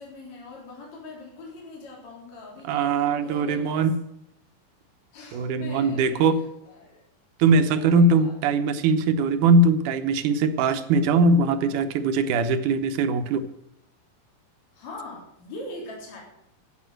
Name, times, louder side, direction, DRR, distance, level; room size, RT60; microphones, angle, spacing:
voice 1, 0.0-3.9 5.1-6.3 6.7-7.0 7.7-8.4 14.7-16.2, left 2 dB, 55° left, -3 dB, 4.7 m, -42 dB
voice 2, 2.7-3.9 5.3-6.4 7.4-13.4, right 3 dB, 70° right, 10 dB, 2.3 m, -21 dB
16.0 x 6.7 x 7.8 m, 0.77 s
omnidirectional pair, 3.9 m